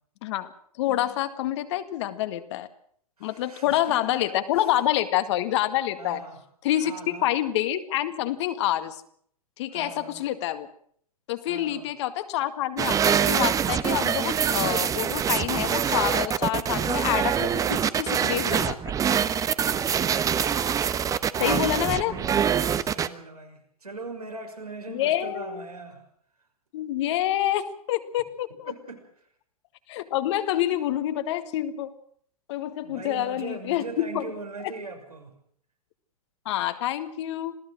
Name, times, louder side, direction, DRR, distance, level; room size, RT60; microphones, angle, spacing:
voice 1, 0.8-2.7 3.2-6.2 6.6-9.0 9.6-10.7 11.3-18.9 21.4-22.1 24.9-25.7 26.7-28.7 29.9-31.9 32.5-34.3 36.5-37.6, left 13 dB, 50° left, 10 dB, 1.9 m, -27 dB
voice 2, 3.2-4.6 6.0-6.4 6.8-7.3 9.7-10.2 11.4-11.9 19.5-20.0 22.0-26.0 28.6-29.1 32.8-35.3, right 3 dB, 85° right, 3 dB, 6.3 m, -40 dB
sound 1, 12.8-23.1, right 8 dB, 20° right, 1.0 m, -24 dB
27.0 x 17.5 x 6.3 m, 0.63 s
figure-of-eight pair, 105°, 19 cm